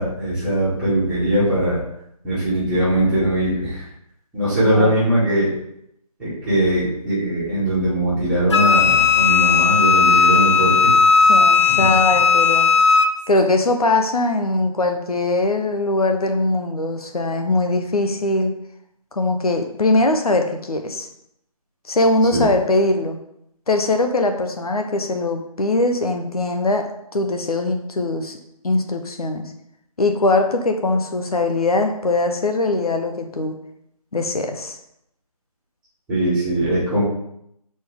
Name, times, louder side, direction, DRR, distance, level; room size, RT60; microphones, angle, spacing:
voice 1, 0.0-1.8 2.2-3.8 4.3-5.5 6.2-10.9 11.7-11.8 22.3-22.5 36.1-37.0, right 1 dB, 5° right, -14 dB, 2.4 m, -20 dB
Wind instrument woodwind instrument, 8.5-13.1, left 5 dB, 50° left, 0.5 m, -15 dB
voice 2, 11.3-12.7 13.3-18.5 19.1-21.1 21.9-23.2 23.7-28.4 28.6-29.5 30.0-33.5 34.1-34.8, left 2 dB, 70° left, 5 dB, 1.0 m, -21 dB
6.2 x 4.3 x 3.6 m, 0.77 s
figure-of-eight pair, 165°, 20 cm